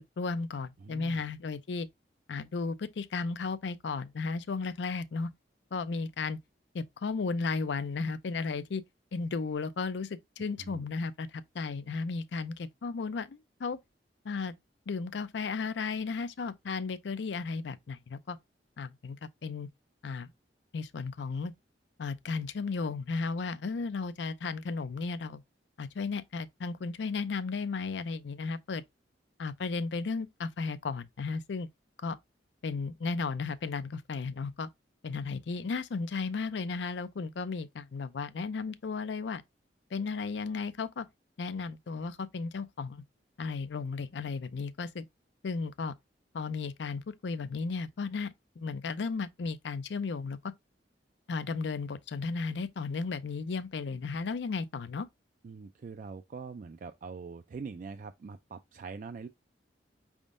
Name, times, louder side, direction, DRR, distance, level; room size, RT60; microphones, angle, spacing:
voice 1, 0.2-1.9 2.3-5.3 5.7-6.4 6.7-8.8 9.1-13.8 14.2-14.5 14.9-18.4 18.8-19.2 19.4-19.7 20.0-20.3 20.7-21.5 22.0-25.4 25.8-28.8 29.4-31.7 32.0-32.2 32.6-34.7 35.0-39.4 39.9-41.1 41.4-43.0 43.4-45.1 45.4-45.9 46.3-50.5 51.3-55.1, left 4 dB, 80° left, 0.5 m, -34 dB
voice 2, 0.8-1.3 10.6-10.8 55.4-59.3, right 5 dB, 50° right, 0.3 m, -43 dB
5.2 x 3.6 x 2.5 m
head